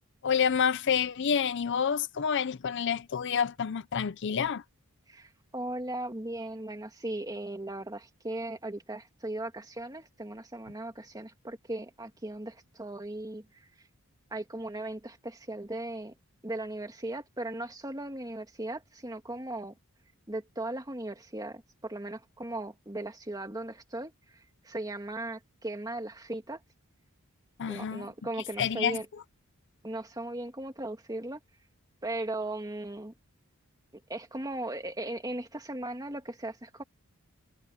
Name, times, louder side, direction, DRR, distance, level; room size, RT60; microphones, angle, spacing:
voice 1, 0.2-4.6 27.6-28.1 28.6-29.0, left 7 dB, 55° left, 0.5 m, -28 dB
voice 2, 5.1-13.7 14.3-16.1 16.4-19.7 20.3-26.6 27.7-29.1 29.8-31.4 32.0-33.1 34.1-36.8, right 1 dB, 15° right, 2.3 m, -37 dB
head